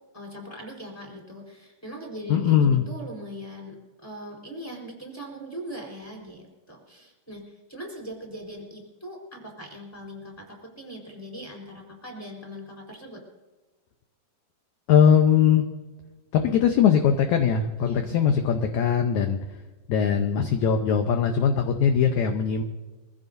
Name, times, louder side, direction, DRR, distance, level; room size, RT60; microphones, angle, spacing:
voice 1, 0.1-13.2 17.8-18.1, equal, 5° left, -1 dB, 3.8 m, -40 dB
voice 2, 2.3-2.8 14.9-15.7 16.3-19.4 19.9-22.6, left 8 dB, 75° left, 5 dB, 1.8 m, -20 dB
23.5 x 16.0 x 2.7 m, 1.3 s
omnidirectional pair, 4.2 m